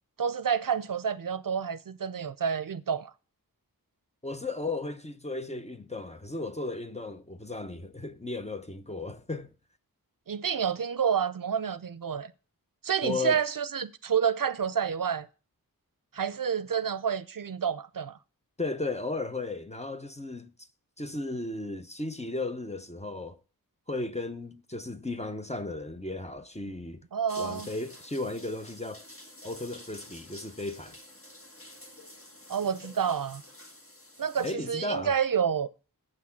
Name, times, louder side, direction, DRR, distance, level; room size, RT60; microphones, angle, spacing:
voice 1, 0.2-3.1 10.3-12.3 12.8-15.3 16.1-18.2 27.1-27.7 32.5-33.4 34.2-35.7, right 7 dB, 65° right, 0.6 m, -29 dB
voice 2, 4.2-9.5 13.0-13.4 18.6-20.5 21.0-23.4 23.9-27.0 27.4-29.0 29.4-31.0 34.4-35.2, left 2 dB, 20° left, 0.8 m, -35 dB
sound 1, 27.3-34.5, left 1 dB, 35° left, 1.5 m, -49 dB
7.8 x 6.3 x 5.8 m
wide cardioid pair, 45°, 36 cm